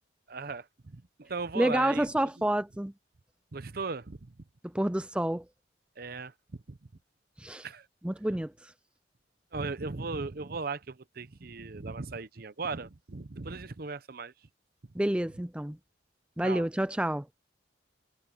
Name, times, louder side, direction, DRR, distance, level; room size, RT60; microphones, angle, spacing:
voice 1, 0.3-2.1 3.5-4.3 6.0-6.3 6.7-6.8 7.6-7.9 9.5-14.3 16.4-16.6, right 4 dB, 50° right, 0.8 m, -37 dB
voice 2, 1.6-2.9 4.6-5.4 7.4-7.7 8.0-8.7 14.9-15.8 16.4-17.3, right 1 dB, 5° right, 0.4 m, -29 dB
head